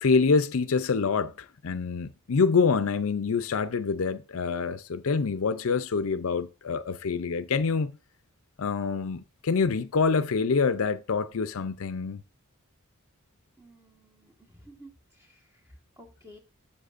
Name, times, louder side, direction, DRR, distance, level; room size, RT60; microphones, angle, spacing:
voice 1, 0.0-8.0 8.6-12.2, left 5 dB, 65° left, 0.5 m, -26 dB
voice 2, 13.6-15.5 16.0-16.4, equal, 15° right, 1.5 m, -53 dB
11.5 x 7.5 x 2.5 m
head